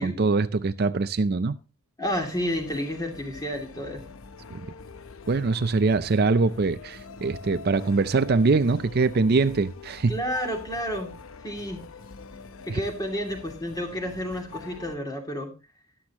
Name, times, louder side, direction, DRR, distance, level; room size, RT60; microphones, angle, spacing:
voice 1, 0.0-1.6 4.5-4.7 5.3-10.1 12.7-12.8, right 3 dB, 45° right, 0.4 m, -23 dB
sound 1, 2.0-15.0, left 4 dB, 70° left, 0.8 m, -44 dB
voice 2, 2.0-4.0 10.1-11.1 11.4-11.8 12.6-15.5, equal, 15° left, 2.6 m, -30 dB
13.5 x 11.5 x 3.0 m
head